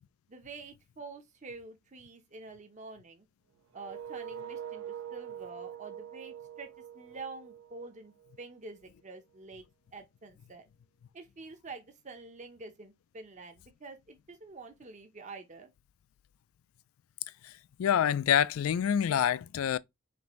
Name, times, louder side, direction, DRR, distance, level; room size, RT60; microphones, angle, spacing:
voice 1, 0.3-3.3 3.7-4.8 5.1-9.6 9.9-10.7 11.1-15.7, right 3 dB, 35° right, 0.6 m, -47 dB
sound 1, 3.7-8.6, right 9 dB, 80° right, 0.5 m, -44 dB
voice 2, 17.8-19.8, left 9 dB, 75° left, 0.3 m, -26 dB
5.2 x 2.6 x 3.0 m
head